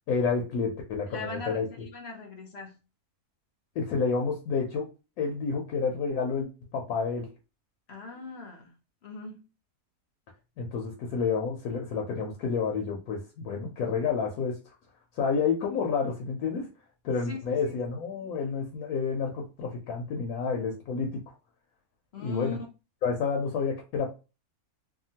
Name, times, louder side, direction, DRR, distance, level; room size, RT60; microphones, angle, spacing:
voice 1, 0.1-1.7 3.8-4.9 5.2-7.3 10.6-14.7 15.1-16.7 17.0-21.1 22.2-22.6 23.0-24.1, left 5 dB, 75° left, 1.0 m, -29 dB
voice 2, 1.1-2.8 7.9-8.7 9.0-9.4 17.3-17.8 22.1-22.7, left 4 dB, 60° left, 0.7 m, -40 dB
2.8 x 2.3 x 2.7 m
omnidirectional pair, 1.6 m